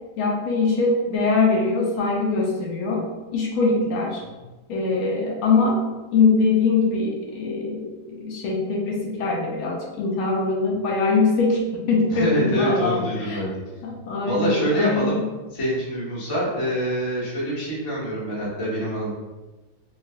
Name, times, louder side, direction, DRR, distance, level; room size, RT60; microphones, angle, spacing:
voice 1, 0.2-3.0 3.3-4.2 4.7-13.4 13.8-15.2, left 3 dB, 80° left, -2 dB, 1.5 m, -22 dB
voice 2, 12.1-13.6 14.2-15.2 15.5-19.1, equal, 25° left, -8 dB, 0.5 m, -25 dB
4.2 x 2.3 x 2.5 m, 1.2 s
omnidirectional pair, 2.4 m